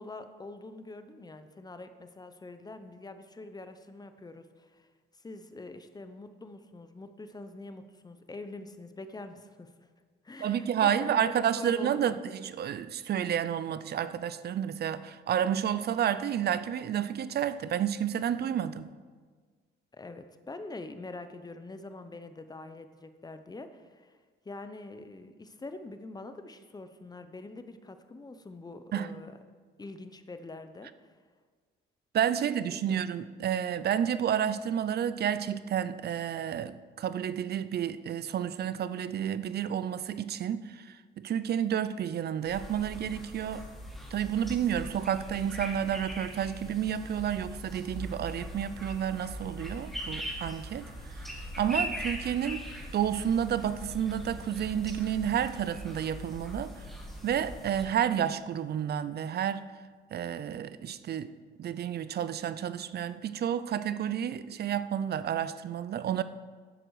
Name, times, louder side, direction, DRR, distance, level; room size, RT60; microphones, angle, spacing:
voice 1, 0.0-4.9 5.1-9.7 10.2-12.2 19.9-24.2 24.4-29.4 29.8-30.9 32.4-33.1, left 2 dB, 20° left, 0.8 m, -45 dB
voice 2, 10.4-18.9 28.9-29.1 32.1-43.7 44.1-50.9 51.6-52.6 52.9-56.7 57.2-59.7 60.1-61.3 61.6-66.2, right 9 dB, 55° right, 0.5 m, -30 dB
sound 1, 42.4-57.8, equal, ahead, 2.5 m, -41 dB
11.0 x 7.6 x 4.8 m
cardioid pair, 90°, 20 cm